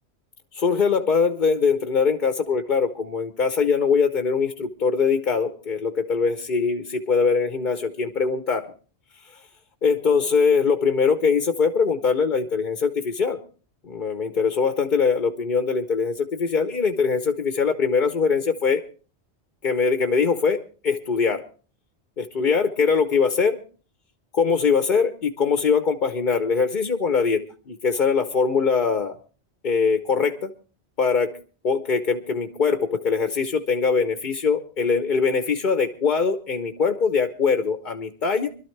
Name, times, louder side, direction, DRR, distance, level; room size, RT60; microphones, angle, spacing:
voice 1, 0.5-8.7 9.8-13.4 13.8-18.8 19.6-21.4 22.2-23.6 24.3-27.4 27.7-29.2 29.6-30.5 31.0-31.3 31.6-38.5, left 5 dB, 50° left, 8 dB, 1.0 m, -22 dB
24.5 x 12.5 x 3.2 m, 0.37 s
omnidirectional pair, 1.1 m